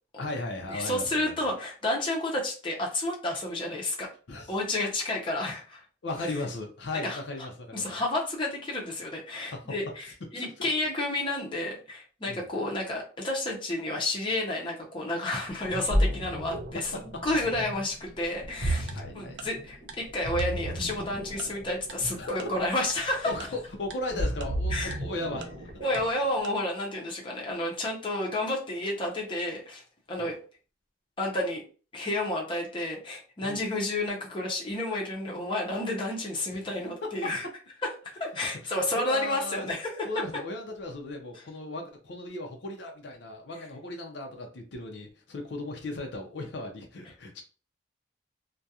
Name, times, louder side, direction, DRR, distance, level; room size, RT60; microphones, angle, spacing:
voice 1, 0.2-1.3 4.3-4.5 6.0-8.0 9.5-9.7 10.3-10.7 12.3-12.4 18.9-19.5 22.1-22.5 23.2-25.5 30.2-30.3 33.4-33.6 36.5-36.6 37.0-37.3 38.4-38.5 39.0-39.7 40.0-47.4, left 2 dB, 70° left, 3 dB, 0.5 m, -36 dB
voice 2, 0.7-4.1 4.5-5.8 7.0-7.5 7.7-23.3 24.7-25.0 25.8-29.8 30.1-30.3 31.2-31.6 31.9-37.5 38.2-40.1, left 1 dB, 30° left, -1 dB, 0.6 m, -31 dB
Ocean, 15.5-26.2, equal, 55° right, 0.8 m, -33 dB
Tick-tock, 18.9-19.0 19.4-19.5 19.9-20.0 20.4-20.5 20.9-21.0 21.4-21.5 21.9-22.0 22.4-22.5 22.9-23.0 23.4-23.5 23.9-24.0 24.4-24.5 24.9-25.0 25.4-25.5 25.9-26.0 26.4-26.5, right 6 dB, 70° right, 0.4 m, -42 dB
2.3 x 2.2 x 2.7 m, 0.38 s
head